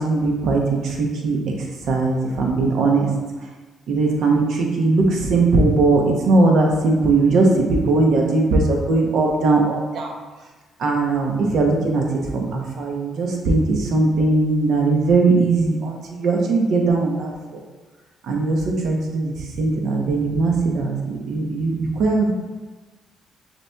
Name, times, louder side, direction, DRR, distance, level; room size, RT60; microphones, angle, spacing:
voice 1, 0.0-1.4 1.8-3.1 3.9-10.1 10.8-12.0 12.3-17.6 18.2-22.3, right 3 dB, 75° right, 1 dB, 0.8 m, -19 dB
6.5 x 2.9 x 2.3 m, 1.3 s
cardioid pair, 90°, 0 cm